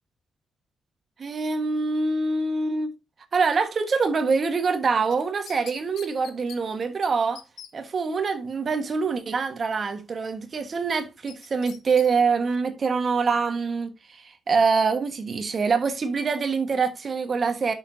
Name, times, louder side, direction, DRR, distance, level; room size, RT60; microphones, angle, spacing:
voice 1, 1.2-2.9 3.3-7.4 7.7-17.7, right 4 dB, 40° right, 1.4 m, -25 dB
sound 1, 5.1-6.6 7.0-7.1 7.4-7.7 11.3-12.1 12.5-12.6, left 8 dB, 85° left, 1.1 m, -43 dB
10.0 x 6.8 x 2.7 m
wide cardioid pair, 145°, 0 cm